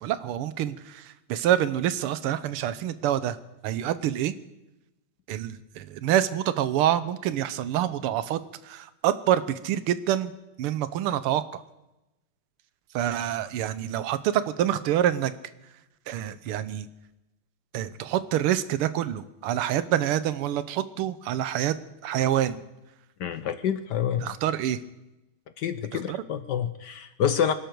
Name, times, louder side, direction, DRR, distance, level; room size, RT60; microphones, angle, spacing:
voice 1, 0.0-3.4 3.6-4.3 5.3-10.3 10.6-11.6 12.9-15.3 16.1-16.9 17.7-21.8 22.0-22.6 24.2-24.8 25.9-26.2, right 11 dB, 90° right, 14 dB, 1.7 m, -26 dB
voice 2, 23.2-24.3 25.6-27.5, left 8 dB, 65° left, 11 dB, 1.1 m, -27 dB
25.0 x 11.5 x 4.6 m, 0.98 s
omnidirectional pair, 2.4 m